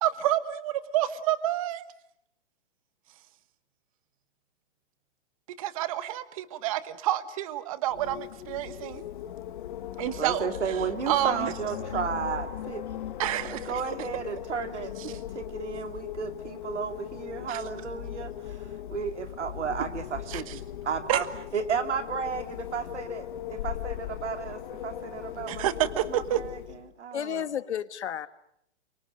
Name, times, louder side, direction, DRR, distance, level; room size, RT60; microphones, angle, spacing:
voice 1, 0.0-1.8 5.6-9.0 10.0-10.5 10.7-11.5 13.2-13.8 15.0-15.2 17.5-17.6 20.3-20.6 21.1-21.2 25.5-26.4, right 13 dB, 30° right, 1.2 m, -29 dB
Wind, 7.9-26.9, left 11 dB, 45° left, 1.5 m, -38 dB
voice 2, 10.2-12.8 13.5-21.3 21.5-25.7 26.1-26.6 27.0-27.4, right 6 dB, 85° right, 3.0 m, -33 dB
voice 3, 27.1-28.3, left 9 dB, 75° left, 1.5 m, -32 dB
27.5 x 24.5 x 7.7 m
hypercardioid pair, 160°, 34 cm